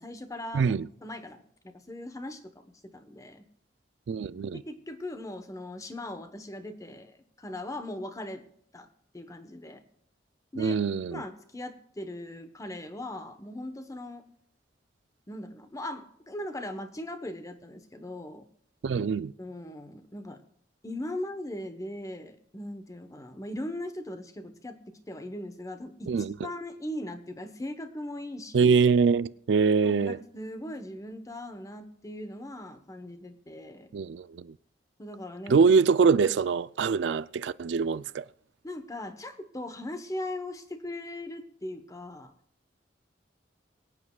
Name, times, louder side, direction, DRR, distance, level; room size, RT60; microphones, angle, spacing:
voice 1, 0.0-0.7 1.0-2.7 2.9-3.4 4.7-8.4 8.7-8.9 9.1-9.8 10.5-10.8 11.1-14.2 15.3-18.5 19.4-20.4 20.8-26.1 26.4-28.7 29.8-33.9 35.0-35.7 38.6-42.3, left 1 dB, 20° left, 1.0 m, -39 dB
voice 2, 0.5-0.9 4.1-4.6 10.6-11.2 18.8-19.3 26.1-26.3 28.5-30.2 33.9-34.5 35.5-38.2, right 5 dB, 70° right, 0.4 m, -24 dB
23.5 x 8.5 x 2.3 m
head